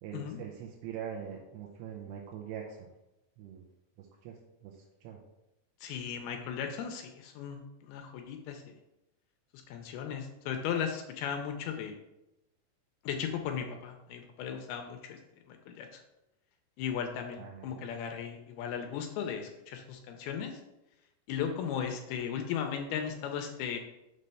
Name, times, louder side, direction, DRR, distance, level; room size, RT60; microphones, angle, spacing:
voice 1, 0.0-2.9 3.4-3.6 4.0-4.4 4.6-5.2 17.4-17.9, right 8 dB, 90° right, -1 dB, 2.9 m, -43 dB
voice 2, 5.8-8.7 9.7-12.0 13.0-15.2 15.5-16.0 16.8-20.6 21.3-23.8, left 8 dB, 80° left, 4 dB, 2.4 m, -36 dB
6.8 x 3.2 x 5.4 m, 0.93 s
omnidirectional pair, 4.8 m